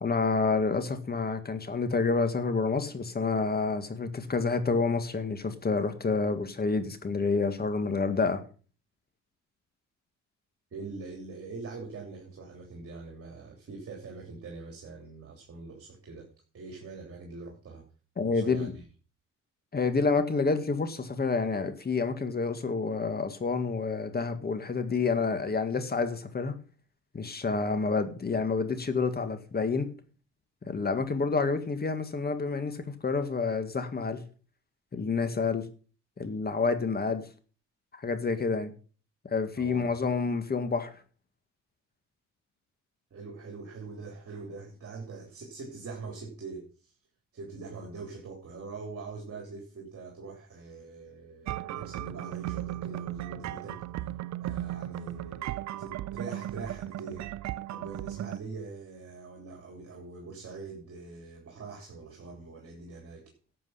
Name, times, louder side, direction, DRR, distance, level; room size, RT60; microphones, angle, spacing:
voice 1, 0.0-8.4 18.2-18.7 19.7-26.6 27.1-29.9 30.7-34.2 34.9-35.6 36.2-37.2 38.0-38.7 39.3-40.9, left 4 dB, 30° left, 9 dB, 1.9 m, -28 dB
voice 2, 10.7-16.3 16.5-17.9 18.3-18.8 39.6-39.9 43.1-46.9 47.3-53.8 54.4-57.3 57.7-63.3, right 4 dB, 50° right, 0 dB, 3.1 m, -43 dB
sound 1, 51.5-58.4, right 14 dB, 65° right, 0.6 m, -36 dB
12.0 x 7.7 x 5.7 m, 0.39 s
cardioid pair, 90°, 30 cm